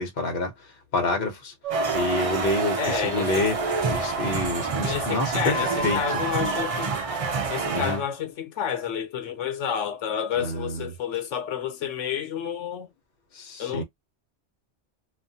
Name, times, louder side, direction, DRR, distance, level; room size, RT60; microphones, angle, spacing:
voice 1, 0.0-1.5 1.9-3.6 3.9-6.2 7.7-8.0 10.3-10.9 13.3-13.8, left 2 dB, 55° left, 1.0 m, -28 dB
sound 1, 1.6-7.4, right 5 dB, 75° right, 1.0 m, -38 dB
sound 2, 1.7-8.1, right 4 dB, 40° right, 0.5 m, -27 dB
voice 2, 2.8-3.4 4.8-6.9 7.5-12.9 13.6-13.8, left 8 dB, 80° left, 1.1 m, -30 dB
2.5 x 2.4 x 2.7 m
omnidirectional pair, 1.2 m